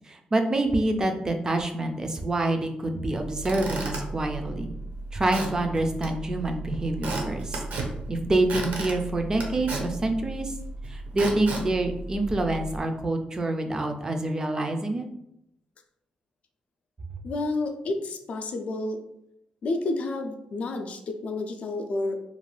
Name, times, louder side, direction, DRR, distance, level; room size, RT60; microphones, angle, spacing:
voice 1, 0.1-4.7 5.1-7.6 8.1-10.5 10.9-15.1, right 2 dB, 25° right, 5 dB, 0.3 m, -27 dB
Squeak / Wood, 3.2-12.8, right 2 dB, 70° right, 0.6 m, -34 dB
voice 2, 17.2-19.0 19.6-22.2, left 2 dB, 55° left, 6 dB, 0.4 m, -30 dB
2.5 x 2.2 x 3.1 m, 0.80 s
wide cardioid pair, 140°, 3 cm